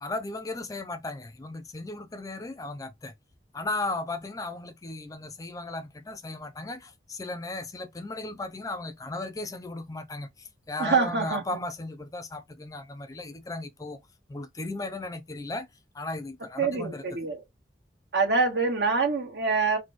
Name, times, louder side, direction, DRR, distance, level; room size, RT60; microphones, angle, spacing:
voice 1, 0.0-3.1 3.5-14.0 14.3-15.7 15.9-17.0, left 2 dB, 20° left, 0.4 m, -36 dB
voice 2, 10.8-11.6 16.6-17.4 18.1-19.8, right 4 dB, 75° right, 1.3 m, -25 dB
4.1 x 2.1 x 3.1 m
head